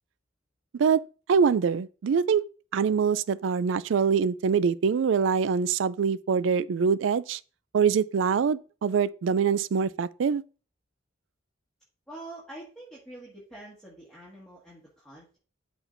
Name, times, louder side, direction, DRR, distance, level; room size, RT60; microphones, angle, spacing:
voice 1, 1.3-2.4 2.7-7.4 7.7-10.4, right 6 dB, 70° right, 0.4 m, -24 dB
voice 2, 12.1-15.4, right 1 dB, 5° left, 1.8 m, -45 dB
12.0 x 4.4 x 2.6 m
head